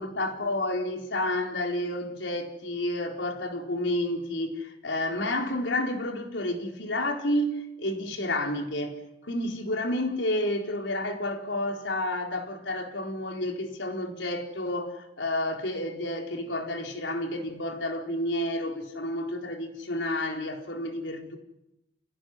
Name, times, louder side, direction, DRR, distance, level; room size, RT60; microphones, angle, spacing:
voice 1, 0.0-21.4, left 1 dB, 85° left, 4.3 m, -30 dB
29.0 x 17.5 x 9.7 m
head